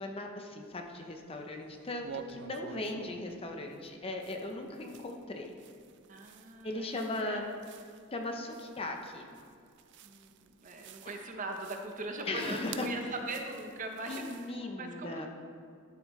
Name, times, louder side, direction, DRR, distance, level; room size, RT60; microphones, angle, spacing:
voice 1, 0.0-5.5 6.6-7.4 8.1-9.3 12.3-12.9 14.1-15.3, left 2 dB, 25° left, 3 dB, 0.6 m, -38 dB
sound 1, 0.6-1.4 1.7-14.6, right 7 dB, 55° right, 0.4 m, -51 dB
voice 2, 6.1-7.5 10.0-15.3, right 2 dB, 35° right, 3 dB, 0.8 m, -41 dB
11.5 x 7.0 x 3.2 m, 2.5 s
head